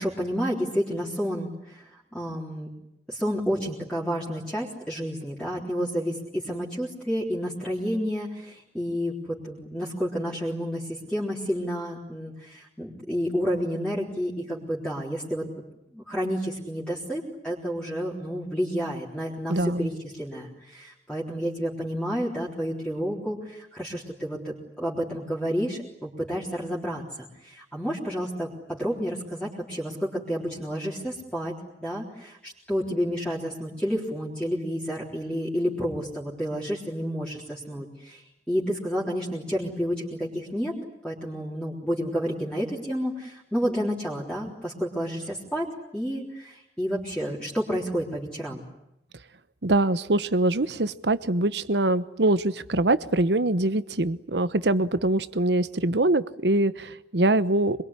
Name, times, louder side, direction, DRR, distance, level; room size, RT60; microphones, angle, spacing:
voice 1, 0.0-2.7 3.1-15.5 15.9-31.5 31.8-38.2 38.5-40.8 41.0-48.6, equal, 5° left, -5 dB, 3.8 m, -30 dB
voice 2, 19.5-19.9 49.6-57.8, right 2 dB, 75° right, 14 dB, 1.1 m, -23 dB
25.5 x 22.5 x 9.9 m, 0.84 s
head